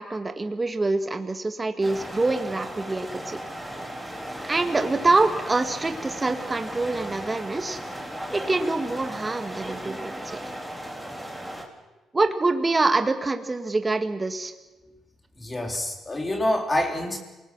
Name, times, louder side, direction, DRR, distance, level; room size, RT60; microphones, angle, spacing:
voice 1, 0.0-3.4 4.4-7.8 8.3-10.4 12.1-14.5, right 3 dB, 20° right, 7 dB, 1.8 m, -25 dB
sound 1, 1.8-11.6, right 1 dB, ahead, 4.5 m, -36 dB
voice 2, 15.4-17.2, left 1 dB, 20° left, 3 dB, 3.9 m, -26 dB
28.0 x 19.5 x 6.2 m, 1.1 s
cardioid pair, 90°, 0 cm